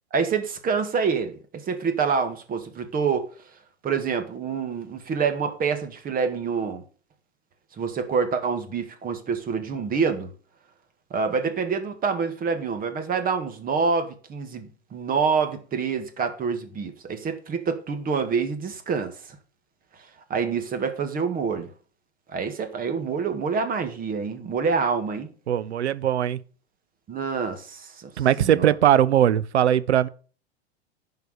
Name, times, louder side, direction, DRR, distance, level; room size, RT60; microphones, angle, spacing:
voice 1, 0.1-3.3 3.8-6.8 7.8-10.3 11.1-19.4 20.3-21.7 22.3-25.3 27.1-28.7, right 5 dB, 25° right, 1.8 m, -27 dB
voice 2, 25.5-26.4 28.2-30.1, right 10 dB, 80° right, 0.7 m, -20 dB
10.5 x 4.9 x 6.5 m
hypercardioid pair, 100°, 33 cm